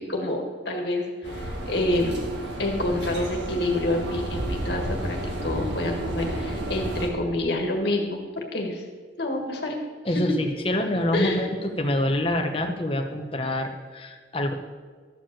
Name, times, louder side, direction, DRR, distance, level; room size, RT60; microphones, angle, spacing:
voice 1, 0.0-2.2 2.6-8.8 9.2-9.7 10.1-10.3 11.1-11.4, left 1 dB, 55° left, 1 dB, 1.8 m, -28 dB
sound 1, 1.2-7.1, right 1 dB, 65° right, 1.8 m, -31 dB
voice 2, 10.0-14.5, left 1 dB, 30° left, 4 dB, 1.0 m, -26 dB
13.0 x 5.1 x 7.6 m, 1.5 s
head